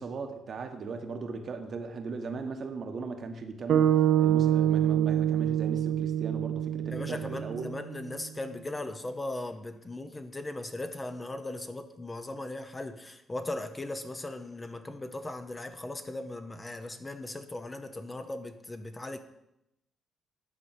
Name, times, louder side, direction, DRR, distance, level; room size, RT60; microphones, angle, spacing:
voice 1, 0.0-7.7, right 4 dB, 50° right, 6 dB, 1.2 m, -38 dB
sound 1, 3.7-7.9, right 11 dB, 65° right, 0.9 m, -26 dB
voice 2, 6.9-19.2, left 2 dB, 20° left, 8 dB, 0.8 m, -38 dB
9.9 x 4.2 x 7.4 m, 0.84 s
cardioid pair, 90°, 0 cm